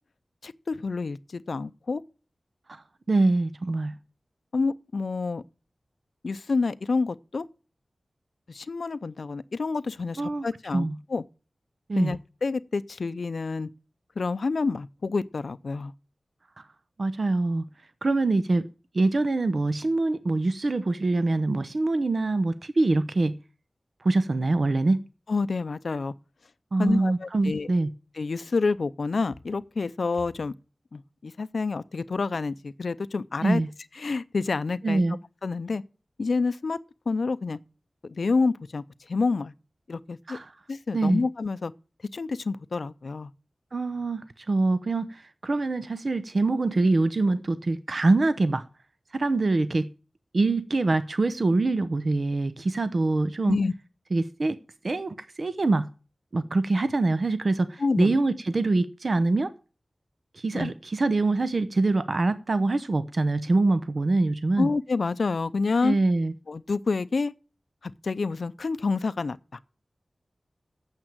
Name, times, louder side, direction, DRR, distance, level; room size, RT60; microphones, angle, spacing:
voice 1, 0.4-2.0 4.5-5.4 6.2-7.4 8.5-11.2 12.0-13.7 14.2-15.9 25.3-26.1 26.8-27.7 28.2-30.5 30.9-33.6 34.0-35.0 35.4-35.8 36.2-36.8 37.1-37.6 38.1-39.5 39.9-40.4 40.7-41.7 42.1-43.3 53.5-53.7 57.8-58.2 60.5-60.7 64.6-66.0 66.5-67.3 67.8-69.4, left 4 dB, 75° left, 0.5 m, -28 dB
voice 2, 3.1-3.9 10.2-10.5 10.7-10.9 11.9-12.1 17.0-17.6 18.0-18.7 18.9-23.3 24.0-25.0 26.7-27.9 33.4-33.7 34.8-35.2 40.3-40.5 40.9-41.2 43.7-48.7 49.1-49.9 50.3-53.6 54.1-54.6 54.8-55.9 56.3-59.5 60.3-64.7 65.8-66.3, right 2 dB, 55° right, 0.7 m, -24 dB
8.9 x 7.5 x 8.8 m
wide cardioid pair, 90°, 0 cm